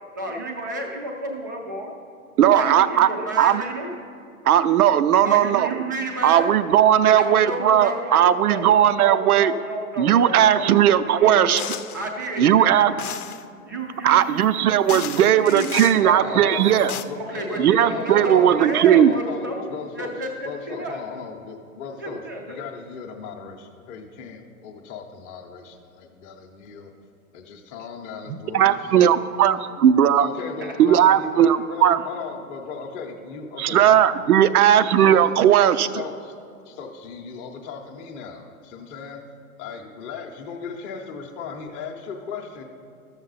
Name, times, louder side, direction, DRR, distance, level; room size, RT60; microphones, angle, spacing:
voice 1, 0.1-1.9 2.5-3.9 5.2-6.5 7.0-10.7 11.0-11.7 11.9-13.1 13.7-16.6 17.2-19.7 19.9-21.0 22.0-22.6 30.6-30.8 31.9-32.0, right 1 dB, 15° right, 0 dB, 0.3 m, -31 dB
voice 2, 2.4-3.1 3.4-3.6 4.5-5.7 6.2-9.5 10.0-11.6 12.4-12.9 14.0-16.9 17.6-19.1 28.5-30.3 30.8-32.0 33.6-35.9, right 10 dB, 80° right, 13 dB, 0.6 m, -17 dB
sound 1, 11.6-12.0 13.0-13.4 14.4-14.5 14.9-16.0 16.6-17.0, left 10 dB, 80° left, 0.7 m, -33 dB
voice 3, 16.0-20.1 20.4-26.9 27.3-29.1 30.2-33.9 35.0-35.3 35.8-36.3 36.7-39.2 39.6-42.6, left 5 dB, 20° left, 2 dB, 0.7 m, -36 dB
12.5 x 7.1 x 4.0 m, 2.4 s
hypercardioid pair, 140°, 44 cm